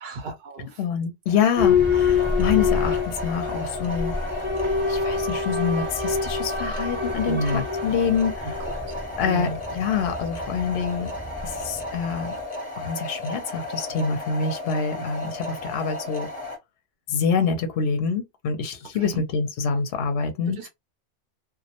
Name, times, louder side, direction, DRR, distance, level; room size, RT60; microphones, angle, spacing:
voice 1, 0.0-0.8 7.3-7.6 9.3-9.6 14.9-15.0 19.0-19.2 20.6-20.7, right 1 dB, 60° right, 0.7 m, -30 dB
voice 2, 0.8-4.1 4.9-8.6 9.2-11.1 11.4-12.4 12.8-16.3 17.1-20.7, left 6 dB, 65° left, 0.8 m, -26 dB
sound 1, 1.3-16.6, left 2 dB, 35° left, 0.8 m, -34 dB
Boat Water vehicle / Alarm, 1.6-12.2, left 5 dB, 15° right, 0.4 m, -26 dB
2.1 x 2.1 x 2.8 m
omnidirectional pair, 1.2 m